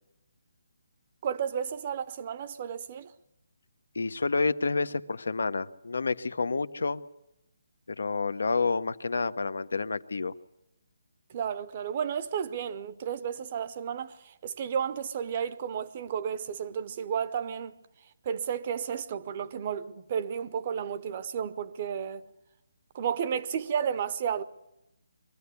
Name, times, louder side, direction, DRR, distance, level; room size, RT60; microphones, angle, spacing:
voice 1, 1.2-3.1 11.3-17.7 18.3-22.2 22.9-24.4, right 8 dB, 30° right, 0.6 m, -32 dB
voice 2, 3.9-7.0 7.9-10.3, left 4 dB, 85° left, 0.8 m, -29 dB
23.0 x 14.0 x 8.2 m
hypercardioid pair, 170°, 0 cm